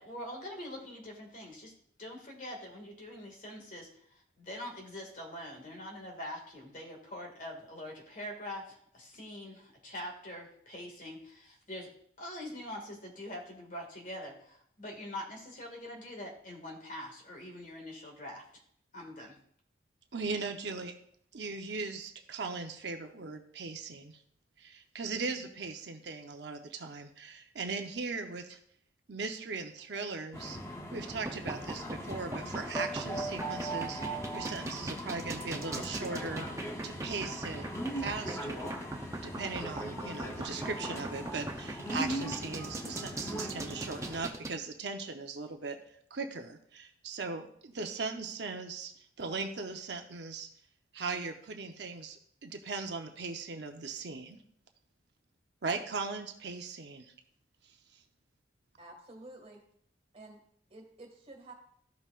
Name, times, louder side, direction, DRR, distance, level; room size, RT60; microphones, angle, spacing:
voice 1, 0.0-1.7 2.0-11.9 12.2-18.5 18.9-19.4, left 1 dB, 45° left, 1 dB, 2.0 m, -44 dB
voice 2, 20.1-20.9 21.3-24.2 24.6-28.6 29.1-30.6 30.9-37.6 38.0-38.8 39.2-45.8 46.1-48.9 49.2-50.5 50.9-54.4 55.6-57.1, right 4 dB, 65° right, 5 dB, 0.7 m, -39 dB
sound 1, 30.3-44.2, right 1 dB, 15° left, 0.8 m, -39 dB
sound 2, 31.1-44.5, right 2 dB, 15° right, 0.7 m, -40 dB
voice 3, 58.8-59.6 60.1-60.4 60.7-61.5, right 2 dB, 35° right, 1 dB, 1.8 m, -50 dB
14.0 x 5.5 x 2.5 m, 0.66 s
head